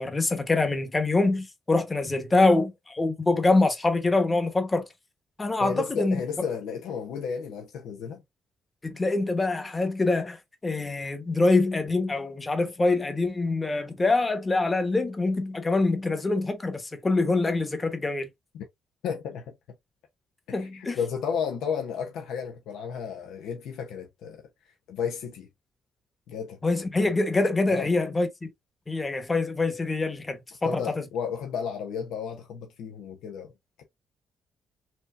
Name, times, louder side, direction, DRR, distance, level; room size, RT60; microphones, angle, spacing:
voice 1, 0.0-4.8 5.4-6.2 8.8-18.3 20.5-21.0 26.6-28.5 28.9-30.8, left 3 dB, 20° left, 1.1 m, -25 dB
voice 2, 5.6-8.2 18.5-18.6 19.0-19.5 20.5-24.4 24.9-25.5 26.3-26.6 27.7-27.9 30.6-33.5, left 6 dB, 85° left, 0.8 m, -33 dB
4.4 x 2.8 x 2.5 m
cardioid pair, 90°, 0 cm